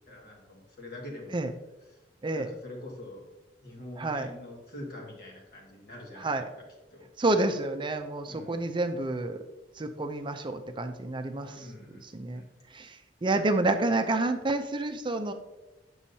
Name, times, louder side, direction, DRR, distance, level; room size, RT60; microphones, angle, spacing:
voice 1, 0.1-1.4 2.3-3.3 3.6-6.4 6.9-7.1 8.3-8.6 11.4-12.0 12.3-12.5, left 1 dB, 60° left, -2 dB, 2.0 m, -44 dB
voice 2, 4.0-4.3 6.2-6.4 7.2-9.4 9.7-15.3, right 2 dB, 30° right, 7 dB, 0.5 m, -29 dB
8.6 x 6.2 x 2.8 m, 1.0 s
head